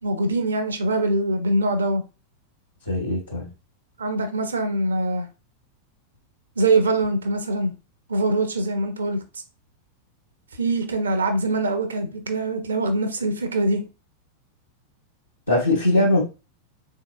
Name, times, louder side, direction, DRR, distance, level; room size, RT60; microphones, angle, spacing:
voice 1, 0.0-2.0 4.0-5.3 6.6-7.7 8.1-9.2 10.6-13.8, right 2 dB, 70° right, 0.6 m, -23 dB
voice 2, 2.9-3.5 15.5-16.2, left 1 dB, 80° left, 0.8 m, -20 dB
3.8 x 2.8 x 2.3 m
figure-of-eight pair, 90°, 0 cm